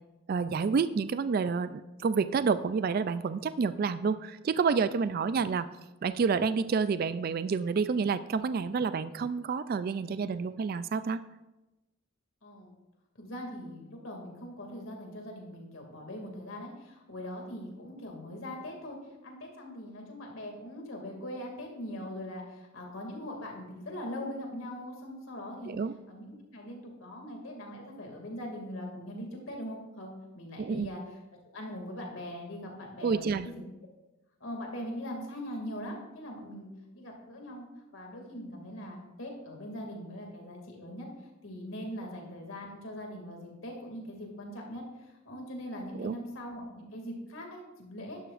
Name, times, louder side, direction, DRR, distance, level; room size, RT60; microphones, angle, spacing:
voice 1, 0.3-5.7 6.0-11.2 25.7-25.9 30.6-30.9 33.0-33.5 46.0-46.1, right 5 dB, 45° right, 13 dB, 0.3 m, -29 dB
voice 2, 12.4-12.7 13.1-19.0 19.2-25.8 26.1-31.0 31.5-33.6 34.4-36.7 36.9-37.7 37.9-41.1 41.4-48.2, equal, 75° left, 1 dB, 2.4 m, -41 dB
11.5 x 11.0 x 2.5 m, 1.0 s
head